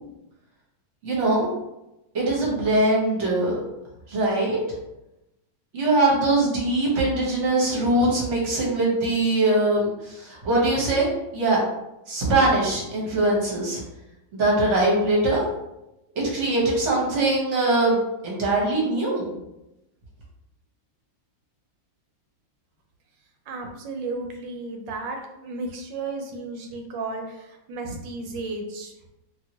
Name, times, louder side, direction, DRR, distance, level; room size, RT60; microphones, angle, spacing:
voice 1, 1.0-1.5 2.1-3.6 4.1-4.6 5.7-11.1 11.3-11.6 12.1-13.8 14.3-15.4 16.1-19.3, right 2 dB, 45° right, -4 dB, 1.1 m, -22 dB
voice 2, 23.5-28.9, right 3 dB, 80° right, 3 dB, 1.3 m, -33 dB
2.8 x 2.8 x 2.8 m, 0.91 s
omnidirectional pair, 2.0 m